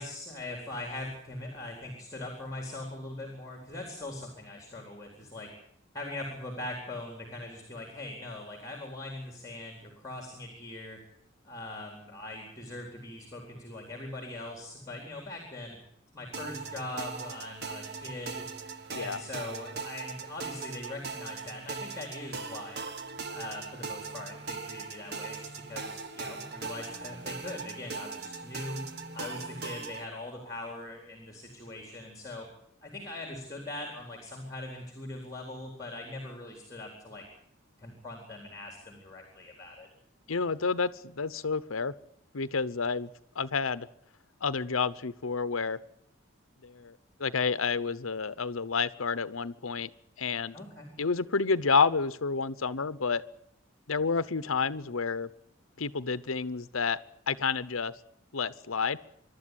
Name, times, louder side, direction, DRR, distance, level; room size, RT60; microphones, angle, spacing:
voice 1, 0.0-5.5 5.9-11.0 11.4-15.8 16.1-18.5 18.9-22.9 23.3-32.5 32.8-37.2 37.8-39.9 50.5-50.9, left 2 dB, 15° left, 2 dB, 4.0 m, -41 dB
sound 1, 16.3-30.1, right 4 dB, 55° right, 1.5 m, -40 dB
voice 2, 40.3-41.9 42.3-43.1 43.4-43.9 44.4-45.8 46.6-49.9 50.2-50.6 51.0-53.2 53.9-55.3 55.8-57.0 57.3-57.9 58.3-59.0, left 5 dB, 85° left, 14 dB, 0.9 m, -29 dB
26.0 x 12.5 x 9.8 m, 0.69 s
head